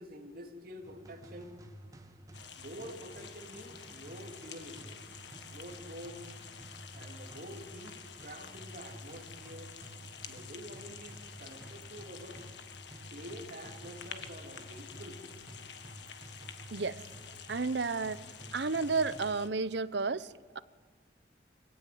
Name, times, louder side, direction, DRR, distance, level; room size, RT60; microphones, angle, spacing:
voice 1, 0.0-1.6 2.5-5.0 5.5-6.2 6.9-9.7 10.3-12.4 13.1-15.2, equal, 50° right, 2 dB, 3.1 m, -47 dB
sound 1, 0.8-19.8, right 1 dB, 20° right, 1.4 m, -52 dB
sound 2, 2.3-19.5, left 7 dB, 75° left, 1.7 m, -49 dB
voice 2, 16.7-17.0 17.5-18.2 18.5-20.6, right 4 dB, 70° right, 16 dB, 0.8 m, -32 dB
25.0 x 17.5 x 7.8 m, 1.5 s
head